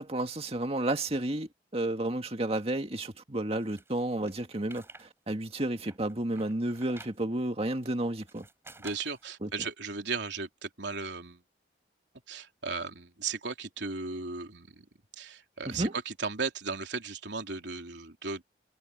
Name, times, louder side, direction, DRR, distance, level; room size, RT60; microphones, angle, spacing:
voice 1, 0.0-8.5 9.4-9.5 15.7-15.9, right 1 dB, 35° right, 2.0 m, -32 dB
sound 1, 3.5-5.1 5.4-7.2 7.8-9.3, right 2 dB, 15° right, 4.0 m, -51 dB
voice 2, 8.8-11.4 12.3-14.9 15.2-18.4, right 4 dB, 85° right, 3.2 m, -36 dB
head